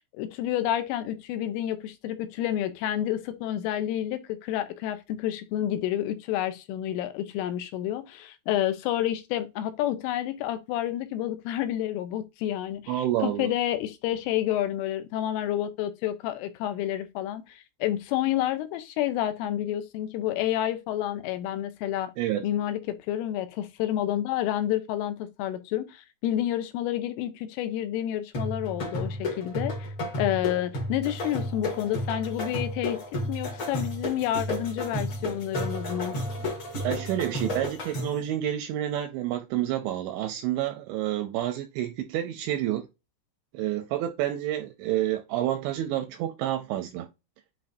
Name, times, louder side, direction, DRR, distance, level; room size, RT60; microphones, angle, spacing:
voice 1, 0.1-22.1 22.4-22.8 23.1-29.8 30.2-33.0 33.3-36.2, left 12 dB, 80° left, 3.2 m, -29 dB
voice 2, 12.9-13.5 22.2-22.4 36.7-42.9 43.5-47.1, right 12 dB, 85° right, 2.6 m, -29 dB
sound 1, 28.3-38.3, left 1 dB, 40° left, 1.9 m, -32 dB
9.8 x 4.0 x 2.7 m
omnidirectional pair, 5.9 m